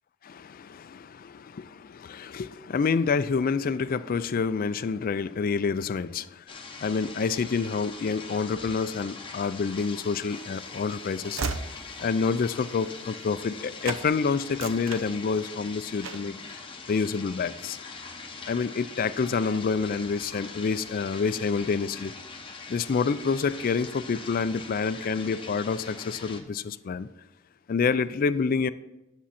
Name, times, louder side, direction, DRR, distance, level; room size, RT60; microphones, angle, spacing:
voice 1, 0.2-6.4 6.8-11.4 11.7-16.6 16.9-17.8 18.5-22.1 22.7-27.1 27.7-28.7, left 5 dB, 45° left, 0.4 m, -28 dB
sound 1, 6.5-26.4, left 4 dB, 25° left, 1.0 m, -42 dB
Train / Slam, 9.9-13.6 13.8-14.1 14.4-15.6 16.0-16.4, right 4 dB, 85° right, 0.7 m, -37 dB
10.0 x 7.1 x 4.2 m
head